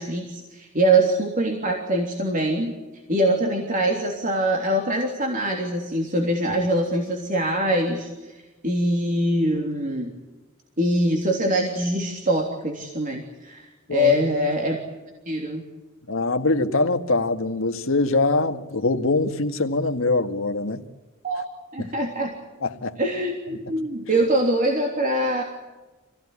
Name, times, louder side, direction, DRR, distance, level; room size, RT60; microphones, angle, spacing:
voice 1, 0.0-2.7 3.1-8.4 8.6-10.1 10.8-14.8 15.2-15.6 21.2-21.4 21.7-22.3 23.0-25.4, right 1 dB, 40° right, 3.3 m, -23 dB
voice 2, 16.1-20.8 21.8-21.9 22.6-23.0, left 3 dB, 75° left, 1.9 m, -23 dB
26.5 x 17.5 x 9.8 m
head